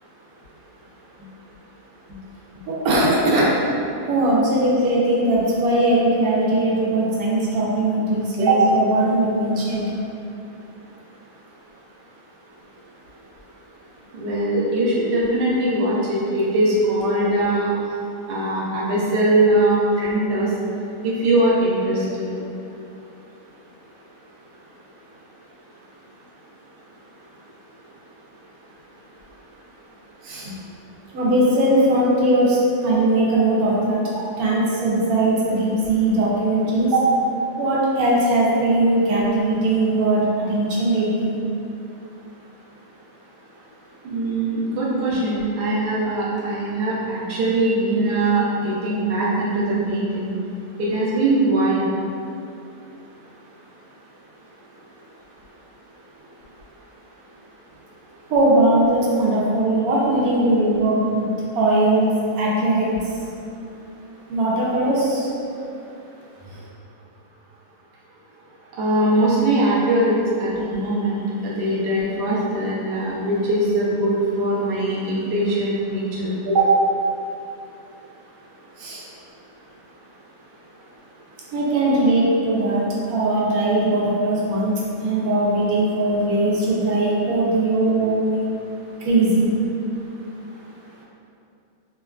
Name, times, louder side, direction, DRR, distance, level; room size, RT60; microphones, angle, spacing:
voice 1, 2.7-3.5 4.1-9.8 30.2-30.5 31.1-34.0 34.4-36.9 37.6-41.4 58.3-61.3 61.5-62.1 62.3-62.9 64.3-65.3 66.5-66.6 78.8-79.0 81.5-84.7 85.0-88.5 89.0-89.5, right 1 dB, 85° right, -5 dB, 1.1 m, -20 dB
voice 2, 14.1-17.7 18.3-20.5 21.0-22.3 36.9-37.1 44.0-50.3 50.8-51.9 68.8-71.2 71.4-76.7, right 2 dB, 60° right, -6 dB, 0.6 m, -21 dB
2.8 x 2.3 x 2.3 m, 2.6 s
omnidirectional pair, 1.5 m